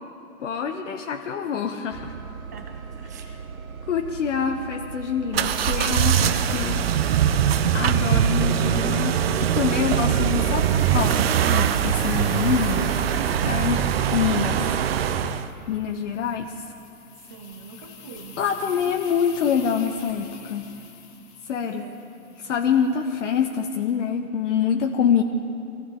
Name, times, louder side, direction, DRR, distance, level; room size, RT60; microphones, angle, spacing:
voice 1, 0.4-2.1 3.2-3.4 3.9-7.1 7.7-12.9 13.4-13.8 14.1-14.6 15.7-16.5 18.4-20.7 21.5-21.9 22.4-25.2, left 7 dB, 55° left, 4 dB, 1.0 m, -25 dB
sound 1, 1.9-8.1, right 6 dB, 65° right, 1.1 m, -39 dB
voice 2, 2.5-3.4 17.3-19.0 21.6-22.0, right 5 dB, 15° right, 5 dB, 0.4 m, -44 dB
sound 2, 5.3-15.5, right 9 dB, 40° right, 0.7 m, -22 dB
sound 3, 5.4-23.7, left 6 dB, 30° left, 2.0 m, -46 dB
23.5 x 15.0 x 3.8 m, 2.6 s
hypercardioid pair, 135°, 45 cm